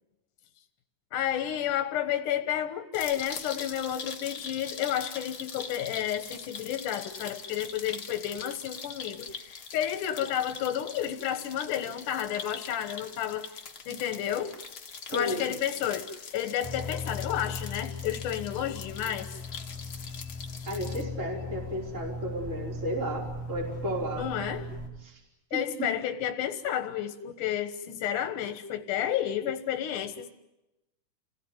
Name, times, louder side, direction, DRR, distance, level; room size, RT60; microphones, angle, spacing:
voice 1, 1.1-13.5 13.9-14.6 15.1-19.3 24.2-24.7 25.5-30.3, left 10 dB, 80° left, 9 dB, 2.8 m, -31 dB
sound 1, 2.9-21.0, left 6 dB, 45° left, 2.5 m, -42 dB
voice 2, 15.1-15.5 20.7-24.3 25.0-25.2 25.5-25.9, equal, 20° right, -1 dB, 5.1 m, -33 dB
sound 2, 16.6-24.9, left 2 dB, 10° left, 5.7 m, -38 dB
29.0 x 18.5 x 9.5 m, 0.93 s
omnidirectional pair, 3.6 m